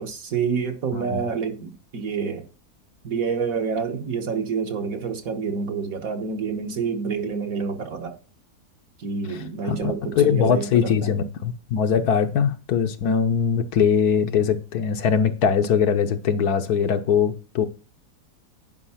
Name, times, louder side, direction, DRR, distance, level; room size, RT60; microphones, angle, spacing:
voice 1, 0.0-2.5 3.0-8.2 9.0-11.2, right 5 dB, 60° right, 1.6 m, -28 dB
voice 2, 9.6-17.7, left 7 dB, 70° left, 1.4 m, -21 dB
10.0 x 5.3 x 5.7 m
omnidirectional pair, 1.7 m